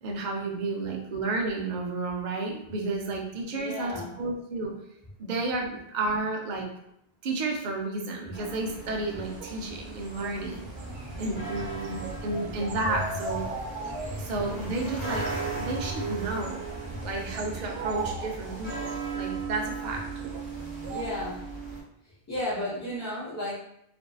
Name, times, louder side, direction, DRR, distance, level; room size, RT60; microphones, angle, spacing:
voice 1, 0.0-4.7 5.2-6.7 7.2-10.7 11.2-13.4 14.2-16.6 17.0-20.0, right 3 dB, 55° right, 0 dB, 0.6 m, -32 dB
voice 2, 3.5-4.1 10.9-11.0 14.1-14.2 15.6-15.7 16.9-17.0 20.9-21.4 22.3-23.5, left 1 dB, 20° left, -10 dB, 0.7 m, -33 dB
sound 1, 8.3-21.8, right 3 dB, 20° right, 0.8 m, -37 dB
sound 2, 9.2-21.0, right 4 dB, 85° right, 0.8 m, -41 dB
2.6 x 2.5 x 2.3 m, 0.78 s
omnidirectional pair, 1.1 m